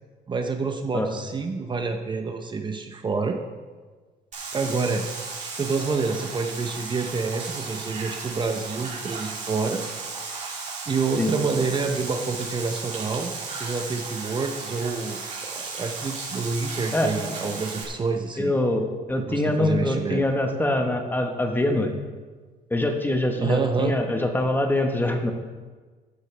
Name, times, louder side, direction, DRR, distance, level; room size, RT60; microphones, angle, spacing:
voice 1, 0.3-3.4 4.5-5.0 5.6-9.8 10.9-18.5 19.3-20.2 23.4-24.0, right 4 dB, 30° right, 4 dB, 0.8 m, -28 dB
sound 1, 4.3-17.8, right 4 dB, 45° right, 3.2 m, -35 dB
voice 2, 18.4-21.9 22.7-25.3, left 1 dB, 10° left, 4 dB, 1.3 m, -24 dB
14.5 x 9.9 x 3.4 m, 1.4 s
cardioid pair, 110°, 17 cm